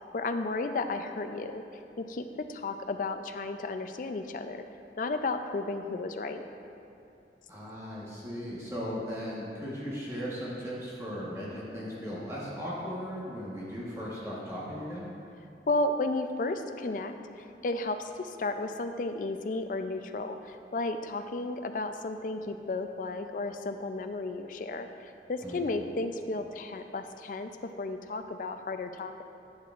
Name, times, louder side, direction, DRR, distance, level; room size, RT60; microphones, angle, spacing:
voice 1, 0.1-1.6 2.0-4.6 5.0-6.4 15.7-29.2, left 2 dB, 45° left, 7 dB, 0.4 m, -33 dB
voice 2, 7.5-15.1 25.4-25.8, equal, 15° right, -7 dB, 1.2 m, -37 dB
10.5 x 8.5 x 2.5 m, 2.7 s
head